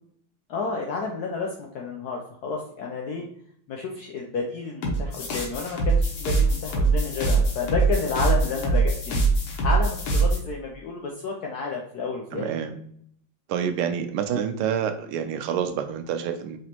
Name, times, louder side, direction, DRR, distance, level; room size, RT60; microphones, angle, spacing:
voice 1, 0.5-3.2 3.7-9.2 9.6-12.5, left 4 dB, 70° left, 0 dB, 0.9 m, -31 dB
sound 1, 4.8-10.4, right 3 dB, 90° left, 1.9 m, -23 dB
voice 2, 12.3-12.8 13.5-16.6, right 8 dB, 85° right, 8 dB, 1.5 m, -27 dB
5.0 x 3.1 x 2.9 m, 0.64 s
omnidirectional pair, 2.3 m